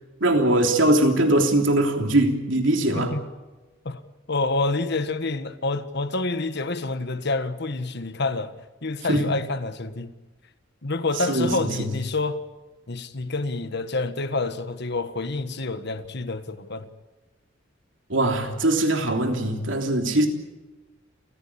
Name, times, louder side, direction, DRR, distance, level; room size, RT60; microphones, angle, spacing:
voice 1, 0.2-3.1 9.1-9.3 11.3-11.9 18.1-20.3, right 1 dB, 70° right, 3.3 m, -21 dB
voice 2, 2.9-3.3 3.8-4.0 4.3-8.5 8.8-10.1 10.8-12.4 12.9-16.9, left 3 dB, 60° left, 1.5 m, -28 dB
29.5 x 15.5 x 8.6 m
head